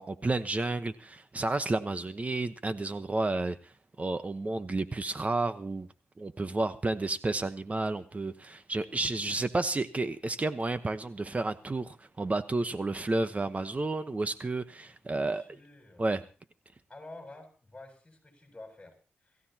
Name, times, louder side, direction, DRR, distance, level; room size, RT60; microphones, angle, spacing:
voice 1, 0.0-3.6 4.0-5.9 6.2-15.4 16.0-16.2, right 2 dB, 35° right, 10 dB, 1.1 m, -31 dB
voice 2, 15.1-16.1 16.9-19.4, left 2 dB, 20° left, 3 dB, 7.8 m, -50 dB
27.0 x 15.0 x 3.0 m, 0.37 s
cardioid pair, 70°, 4 cm